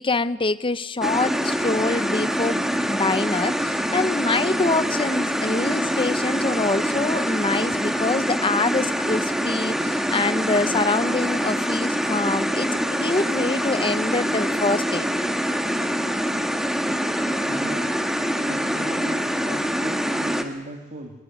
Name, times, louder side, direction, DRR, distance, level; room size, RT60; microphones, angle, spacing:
voice 1, 0.0-15.1, left 3 dB, 25° left, 14 dB, 0.8 m, -25 dB
sound 1, 1.0-20.4, equal, ahead, 1.8 m, -25 dB
voice 2, 17.5-18.1 18.4-21.1, right 1 dB, 35° right, 2 dB, 3.0 m, -37 dB
23.5 x 22.0 x 9.5 m, 1.1 s
head